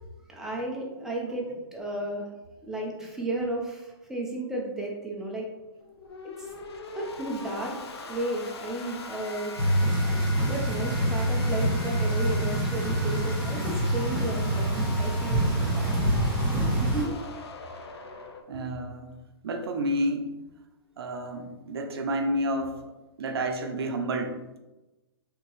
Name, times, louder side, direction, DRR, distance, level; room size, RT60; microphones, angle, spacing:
voice 1, 0.3-2.3 2.6-5.4 6.5-6.6 6.9-7.8 8.1-9.5 10.5-14.7 15.0-15.9 16.5-17.1, right 1 dB, 5° right, -2 dB, 0.6 m, -33 dB
sound 1, 5.8-18.4, left 3 dB, 85° left, 0.5 m, -41 dB
sound 2, 9.6-17.0, right 1 dB, 30° right, 1.3 m, -26 dB
voice 2, 18.5-19.1 19.4-20.3 21.0-22.9 23.2-24.6, right 1 dB, 70° right, 6 dB, 0.6 m, -30 dB
3.5 x 2.9 x 3.0 m, 1.1 s
hypercardioid pair, 150°, 13 cm